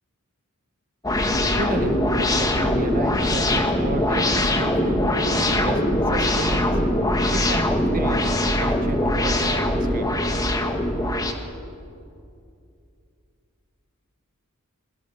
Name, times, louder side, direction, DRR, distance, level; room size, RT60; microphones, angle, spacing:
sound 1, 1.0-11.3, left 1 dB, 15° left, 1.8 m, -22 dB
voice 1, 1.6-5.0 5.3-5.8 6.1-6.7 7.3-10.1, right 2 dB, 40° right, 7 dB, 1.5 m, -32 dB
28.5 x 22.5 x 6.6 m, 2.5 s
head